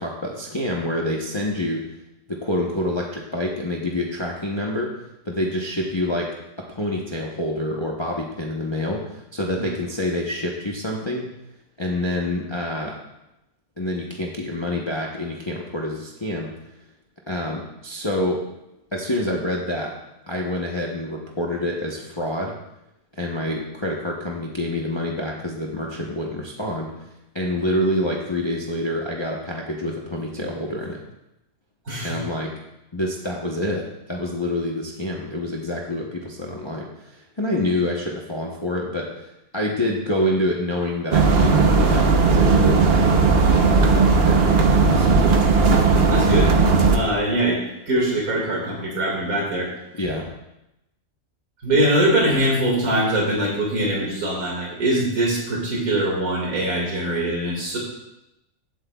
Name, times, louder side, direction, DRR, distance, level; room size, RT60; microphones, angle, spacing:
voice 1, 0.0-1.8 2.4-4.9 5.2-6.3 6.7-11.3 11.8-12.9 13.8-16.5 17.3-18.4 18.9-19.9 20.3-22.5 23.1-27.0 27.3-31.0 32.0-32.5 32.9-43.4 43.7-45.2 49.9-50.3, left 1 dB, 25° left, -2 dB, 0.9 m, -27 dB
voice 2, 31.9-32.2 46.1-46.5 46.9-49.7 51.6-57.8, right 1 dB, 85° right, -3 dB, 2.5 m, -22 dB
sound 1, 41.1-47.0, right 4 dB, 50° right, 1.0 m, -16 dB
16.0 x 7.9 x 2.3 m, 0.90 s
omnidirectional pair, 1.4 m